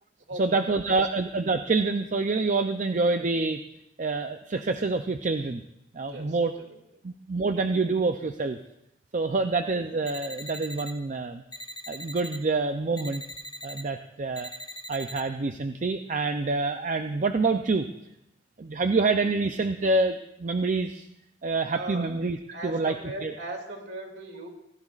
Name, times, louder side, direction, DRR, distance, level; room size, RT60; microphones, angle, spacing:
voice 1, 0.3-3.6 4.0-5.6 5.9-6.5 7.0-8.6 9.1-11.4 11.9-13.2 13.6-14.5 14.9-17.9 18.6-21.1 21.4-22.4 22.6-23.3, right 3 dB, 40° right, 7 dB, 0.5 m, -27 dB
voice 2, 6.1-6.8 9.4-9.5 21.7-22.1 22.5-24.5, right 1 dB, 65° right, 3 dB, 2.5 m, -38 dB
sound 1, 10.1-10.9 11.5-12.4 13.0-13.8 14.3-15.2, equal, 20° left, 0.8 m, -41 dB
25.0 x 16.0 x 2.4 m, 0.83 s
head